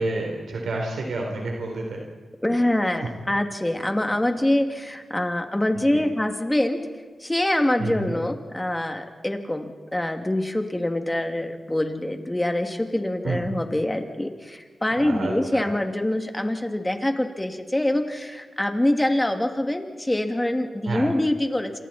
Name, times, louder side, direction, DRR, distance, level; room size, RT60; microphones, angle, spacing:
voice 1, 0.0-2.0 3.0-3.1 5.7-6.0 7.8-8.2 13.2-13.4 15.0-15.7 20.8-21.0, right 2 dB, 85° right, 0 dB, 3.8 m, -29 dB
voice 2, 2.4-6.8 7.2-21.8, left 1 dB, 15° left, 4 dB, 2.7 m, -25 dB
28.5 x 27.0 x 4.5 m, 1.4 s
cardioid pair, 65°, 0 cm